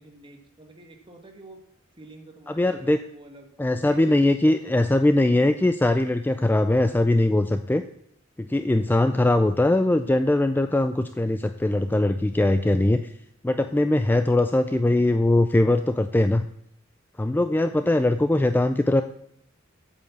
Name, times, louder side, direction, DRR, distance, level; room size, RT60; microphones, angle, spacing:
voice 1, 0.0-1.6 2.0-3.5 3.8-5.1, right 1 dB, 25° right, 3 dB, 1.6 m, -47 dB
voice 2, 2.5-3.0 3.6-7.8 8.4-13.0 13.4-16.4 17.2-19.0, left 1 dB, 10° left, 9 dB, 0.3 m, -21 dB
8.0 x 7.0 x 7.0 m, 0.71 s
head